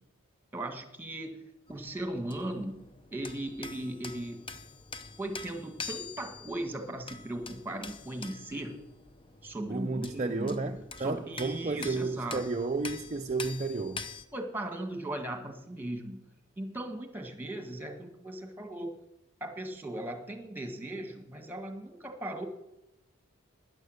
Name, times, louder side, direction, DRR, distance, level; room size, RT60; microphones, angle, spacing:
voice 1, 0.5-1.4 1.7-2.8 3.1-4.4 5.2-8.8 9.4-12.5 14.3-16.3 16.6-19.0 19.4-22.5, right 1 dB, 10° right, 1.6 m, -38 dB
sound 1, 1.7-14.3, left 4 dB, 25° left, 0.7 m, -45 dB
voice 2, 9.7-14.0, right 3 dB, 30° right, 0.5 m, -32 dB
13.5 x 10.0 x 6.5 m
head